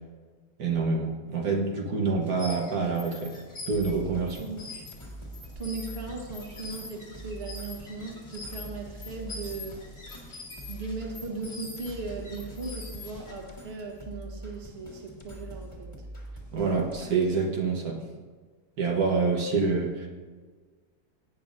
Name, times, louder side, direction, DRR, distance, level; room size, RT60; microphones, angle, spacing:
voice 1, 0.6-3.4 3.7-4.4 16.5-18.0 18.8-20.1, right 4 dB, 70° right, 0 dB, 1.7 m, -27 dB
sound 1, 2.2-13.5, left 3 dB, 65° left, 2.9 m, -45 dB
sound 2, 3.7-17.4, right 1 dB, 20° left, 1.8 m, -44 dB
voice 2, 4.4-4.9 5.5-10.3 10.7-16.1, right 3 dB, 40° right, 1 dB, 1.5 m, -38 dB
17.0 x 8.8 x 2.6 m, 1.5 s
omnidirectional pair, 1.7 m